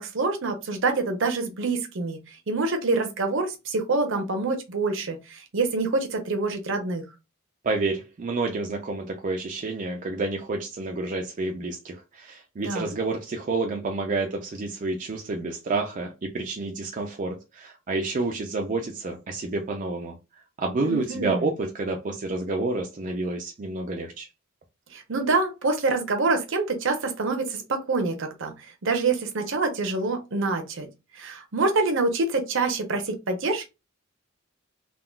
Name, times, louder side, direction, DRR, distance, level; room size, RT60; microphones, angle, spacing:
voice 1, 0.0-2.2 2.5-7.0 12.6-12.9 20.8-21.5 24.9-30.9 31.2-33.7, right 3 dB, 65° right, 0.8 m, -26 dB
voice 2, 7.6-20.2 20.6-24.3, right 3 dB, 40° right, 0.4 m, -29 dB
3.6 x 2.3 x 2.2 m
head